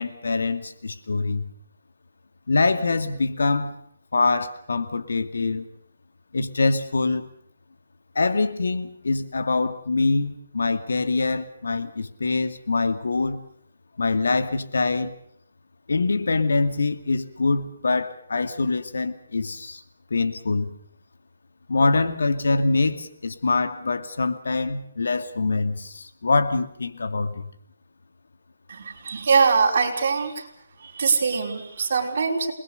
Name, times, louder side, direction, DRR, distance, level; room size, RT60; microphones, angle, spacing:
voice 1, 0.0-1.5 2.5-3.8 4.1-5.7 6.3-7.3 8.1-13.4 14.0-15.1 15.9-19.8 20.1-20.7 21.7-27.5, left 3 dB, 80° left, 2.4 m, -24 dB
voice 2, 28.7-30.5 30.8-32.5, right 5 dB, 50° right, 5.2 m, -22 dB
28.5 x 20.5 x 6.7 m
hypercardioid pair, 170°, 0 cm